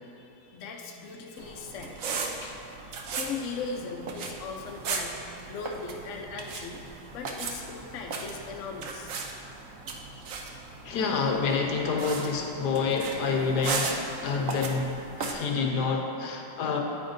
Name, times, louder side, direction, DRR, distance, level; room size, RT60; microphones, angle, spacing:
voice 1, 0.0-2.0 2.4-9.1, left 4 dB, 80° left, 1 dB, 0.6 m, -39 dB
sound 1, 1.4-15.3, right 4 dB, 75° right, 0.7 m, -37 dB
voice 2, 10.8-14.9 15.2-16.8, left 4 dB, 65° left, 2 dB, 1.1 m, -28 dB
9.6 x 8.7 x 2.6 m, 2.8 s
omnidirectional pair, 2.2 m